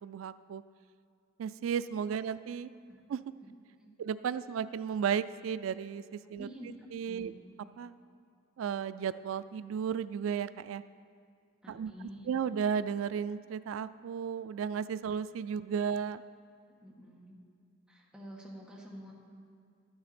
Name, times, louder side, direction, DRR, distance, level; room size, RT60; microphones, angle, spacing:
voice 1, 0.0-0.6 1.4-2.7 3.1-3.2 4.0-6.5 6.9-7.3 7.8-7.9 8.6-10.8 11.7-16.2, right 7 dB, 85° right, 15 dB, 0.3 m, -34 dB
voice 2, 6.4-6.7 7.0-7.3 11.6-12.3 16.8-17.3 17.9-19.1, equal, 5° right, -4 dB, 1.4 m, -48 dB
12.5 x 9.4 x 4.3 m, 2.2 s
head